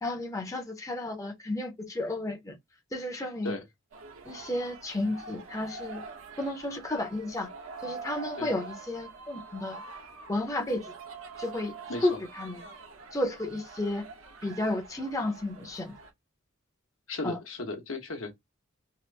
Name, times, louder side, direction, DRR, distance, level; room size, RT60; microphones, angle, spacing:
voice 1, 0.0-2.5 2.9-3.6 4.2-6.0 6.4-7.5 7.8-9.8 10.3-10.9 11.4-11.7 12.0-12.6 13.1-14.0 14.4-15.9 17.2-17.4, left 1 dB, 15° left, 0.6 m, -32 dB
sound 1, 3.9-16.1, right 4 dB, 75° right, 0.8 m, -45 dB
voice 2, 11.9-12.2 17.1-18.3, left 2 dB, 70° left, 0.9 m, -35 dB
2.9 x 2.5 x 3.2 m
head